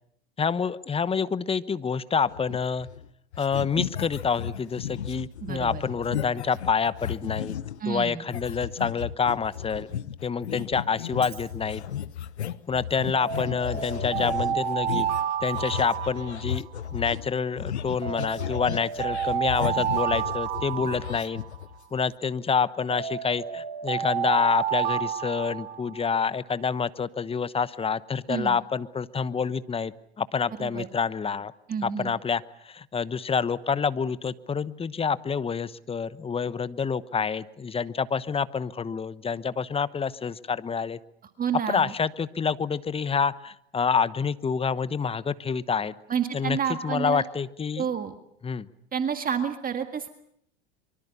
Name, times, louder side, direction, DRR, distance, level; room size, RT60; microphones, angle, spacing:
voice 1, 0.4-2.9 3.4-7.6 7.9-9.9 10.2-11.8 12.7-15.1 15.4-21.4 21.9-31.5 31.8-41.0 41.7-45.9 46.3-46.6 46.8-47.8 48.4-48.7, left 6 dB, 15° left, 16 dB, 1.0 m, -27 dB
sound 1, 2.3-3.1 3.3-7.8 8.3-22.0, left 10 dB, 90° left, 1.0 m, -35 dB
voice 2, 5.4-5.8 7.8-8.2 28.3-28.6 30.6-30.9 31.7-32.1 41.4-41.9 46.1-47.2 47.8-48.1 48.9-50.1, right 7 dB, 25° right, 7 dB, 1.9 m, -29 dB
Alarm, 11.1-11.4 13.1-16.9 18.0-21.8 22.9-26.1, right 10 dB, 60° right, 4.8 m, -30 dB
24.5 x 24.0 x 7.0 m, 0.72 s
hypercardioid pair, 95°, 32 cm